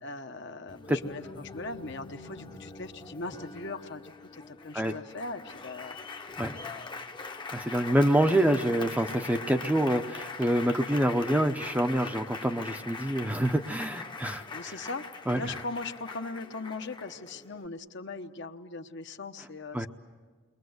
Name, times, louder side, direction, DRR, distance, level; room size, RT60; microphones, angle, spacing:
voice 1, 0.0-6.0 14.5-19.9, left 3 dB, 55° left, 7 dB, 1.0 m, -39 dB
Applause, 0.7-17.7, left 4 dB, 20° left, 0.9 m, -42 dB
voice 2, 6.4-6.7 7.5-14.7 15.3-15.6 19.7-19.9, right 1 dB, 5° right, 6 dB, 0.7 m, -26 dB
30.0 x 22.5 x 8.0 m, 1.4 s
head